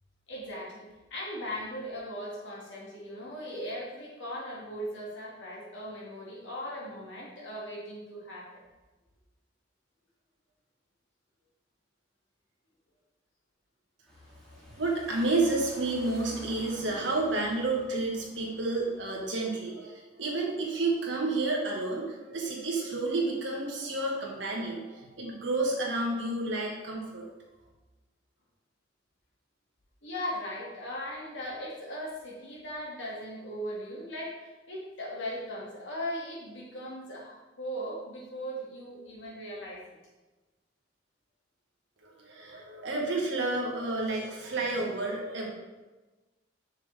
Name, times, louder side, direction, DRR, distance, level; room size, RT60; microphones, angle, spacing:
voice 1, 0.3-8.6 30.0-39.8, equal, 70° left, -4 dB, 2.4 m, -38 dB
sound 1, 14.1-19.3, left 1 dB, 5° left, 2.3 m, -49 dB
voice 2, 14.5-27.3 42.0-45.5, right 2 dB, 70° right, -1 dB, 1.8 m, -30 dB
7.0 x 6.6 x 3.6 m, 1.2 s
head